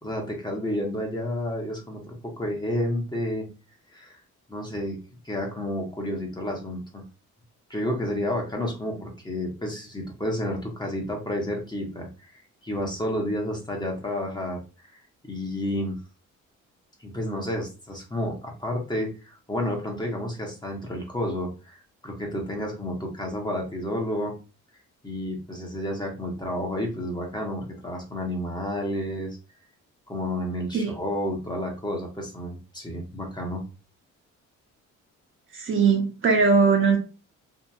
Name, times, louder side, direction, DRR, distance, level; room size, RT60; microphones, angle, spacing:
voice 1, 0.0-3.5 3.9-4.2 4.5-5.0 5.2-7.0 7.7-14.6 15.2-15.9 17.0-24.3 25.0-29.4 30.1-33.6, left 1 dB, 15° left, 0 dB, 0.9 m, -30 dB
voice 2, 35.5-37.0, right 5 dB, 45° right, 2 dB, 0.8 m, -20 dB
2.8 x 2.4 x 2.3 m, 0.31 s
cardioid pair, 90°, 30 cm